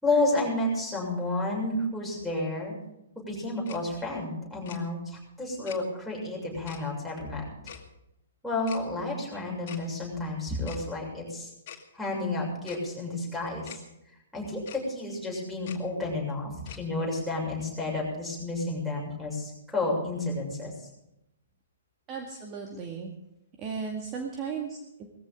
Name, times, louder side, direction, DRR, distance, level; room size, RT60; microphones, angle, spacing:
voice 1, 0.0-2.8 3.2-7.4 8.4-11.5 11.9-13.8 14.3-20.9, left 2 dB, ahead, -5 dB, 7.2 m, -31 dB
Tick-tock, 3.7-3.8 4.7-4.8 5.7-5.8 6.7-6.8 7.7-7.8 8.7-8.8 9.7-9.8 10.7-10.8 11.7-11.8 12.7-12.8 13.7-13.8 14.7-14.8 15.7-15.8 16.7-16.8, left 9 dB, 45° left, 2.3 m, -44 dB
voice 2, 22.1-23.1 23.6-25.1, right 6 dB, 25° right, 1 dB, 2.1 m, -36 dB
19.5 x 15.0 x 3.8 m, 0.85 s
figure-of-eight pair, 120°, 0 cm